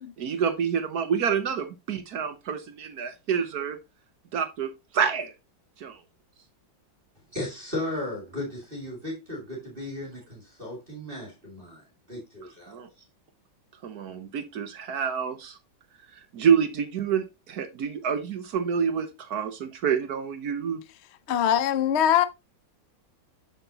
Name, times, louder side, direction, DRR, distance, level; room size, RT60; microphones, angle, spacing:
voice 1, 0.2-3.8 4.3-5.3 5.8-6.0 12.7-12.9 13.8-15.6 16.1-20.8, right 7 dB, 60° right, 1.2 m, -28 dB
voice 2, 7.3-12.8, left 1 dB, 25° right, 2.6 m, -36 dB
voice 3, 21.3-22.2, left 10 dB, 65° left, 0.6 m, -22 dB
7.6 x 7.0 x 2.8 m
omnidirectional pair, 2.1 m